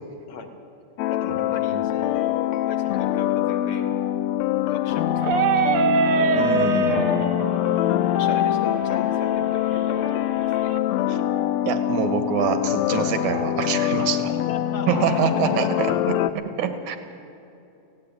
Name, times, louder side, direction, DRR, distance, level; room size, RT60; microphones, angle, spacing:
sound 1, 1.0-16.3, left 12 dB, 75° left, 1.7 m, -24 dB
voice 1, 1.1-3.9 4.7-6.3 6.7-7.3 8.1-10.7 14.3-15.7, left 5 dB, 55° left, 5 dB, 2.4 m, -37 dB
sound 2, 5.2-10.8, right 4 dB, 65° right, 1.5 m, -25 dB
voice 2, 6.3-7.2 11.1-11.2 11.7-14.3 14.9-17.0, right 7 dB, 80° right, 8 dB, 2.7 m, -25 dB
17.0 x 16.0 x 9.7 m, 2.8 s
omnidirectional pair, 3.3 m